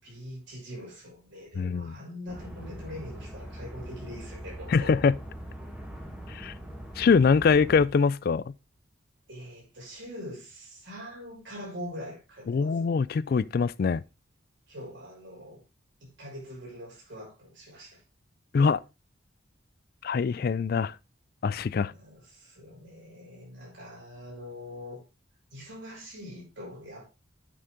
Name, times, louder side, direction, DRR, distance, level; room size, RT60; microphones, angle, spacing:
voice 1, 0.0-5.0 9.3-12.9 14.7-15.6 16.0-18.0 21.8-25.0 25.5-27.1, left 1 dB, 65° right, 6.0 m, -43 dB
voice 2, 1.6-2.0 4.7-5.2 6.3-6.5 7.0-8.5 12.5-14.0 18.5-18.8 20.0-21.0 21.4-21.9, left 5 dB, 50° left, 0.3 m, -23 dB
sound 1, 2.3-7.9, equal, 5° right, 1.7 m, -42 dB
9.3 x 6.2 x 3.6 m
head